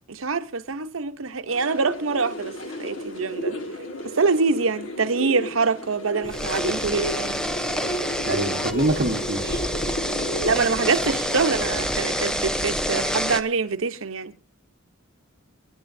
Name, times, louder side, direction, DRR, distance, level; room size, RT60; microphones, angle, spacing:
voice 1, 0.1-3.6 4.1-7.4 10.4-14.3, right 4 dB, 85° right, 0.9 m, -25 dB
sound 1, 1.5-11.5, equal, 70° left, 1.9 m, -33 dB
sound 2, 6.2-13.4, equal, 5° left, 0.7 m, -27 dB
voice 2, 8.2-9.6, right 1 dB, 55° right, 1.3 m, -25 dB
22.5 x 10.5 x 2.7 m
head